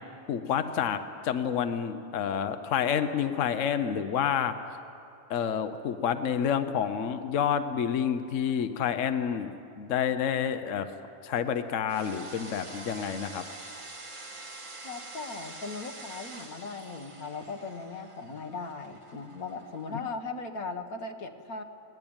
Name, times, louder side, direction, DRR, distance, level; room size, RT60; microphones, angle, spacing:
voice 1, 0.3-1.0 1.2-4.5 5.3-10.9 11.2-13.4 19.9-20.0, left 8 dB, 65° left, 9 dB, 1.1 m, -29 dB
sound 1, 11.9-20.0, right 2 dB, 25° right, 1.2 m, -46 dB
voice 2, 14.8-21.6, left 4 dB, 90° left, 5 dB, 1.9 m, -38 dB
21.5 x 18.0 x 8.9 m, 2.7 s
omnidirectional pair, 1.5 m